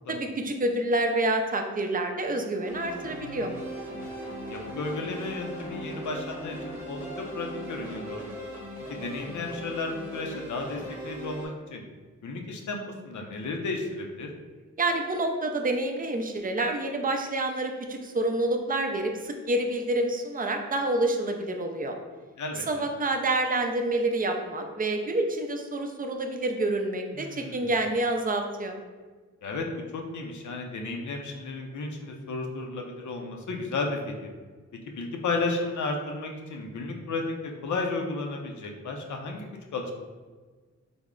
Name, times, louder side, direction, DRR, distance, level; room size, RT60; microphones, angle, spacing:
voice 1, 0.1-3.5 14.8-22.0 22.5-28.8, right 2 dB, 30° right, 4 dB, 0.4 m, -28 dB
sound 1, 2.7-11.5, right 1 dB, 10° right, 0.9 m, -39 dB
voice 2, 4.5-8.3 8.9-10.8 11.0-11.8 12.2-14.3 22.4-22.6 27.2-27.7 29.4-29.6 29.9-34.1 35.0-39.9, left 3 dB, 75° left, 2 dB, 0.6 m, -33 dB
3.4 x 2.1 x 3.7 m, 1.4 s
cardioid pair, 80°, 30 cm